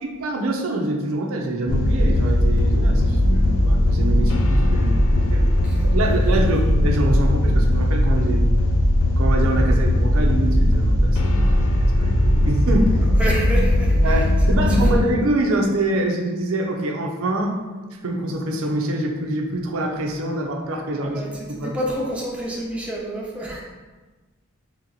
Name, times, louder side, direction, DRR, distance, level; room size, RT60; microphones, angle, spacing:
voice 1, 0.0-5.5 5.8-8.5 9.2-11.6 12.0-13.0 14.0-17.6 18.0-21.2 21.5-21.8, right 1 dB, 90° right, 1 dB, 0.5 m, -25 dB
sound 1, 1.7-15.0, left 1 dB, 80° left, 0.4 m, -18 dB
voice 2, 13.0-14.2 14.6-14.8 21.0-23.6, right 1 dB, 5° right, -4 dB, 0.6 m, -29 dB
3.1 x 2.9 x 3.9 m, 1.3 s
head